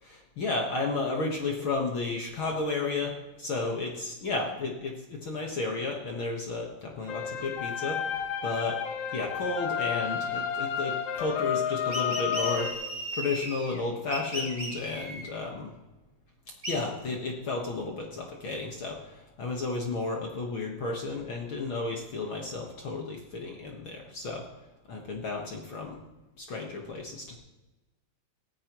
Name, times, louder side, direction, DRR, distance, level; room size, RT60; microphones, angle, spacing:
voice 1, 0.0-8.8 9.1-15.7 16.7-24.5 24.9-26.0 26.4-27.3, left 3 dB, 60° left, 0 dB, 1.3 m, -33 dB
sound 1, 7.1-12.7, left 8 dB, 80° left, 1.4 m, -31 dB
sound 2, 11.9-13.8 14.1-15.3 16.6-16.7, right 1 dB, 70° right, 0.3 m, -36 dB
17.5 x 14.0 x 3.1 m, 1.1 s
omnidirectional pair, 4.4 m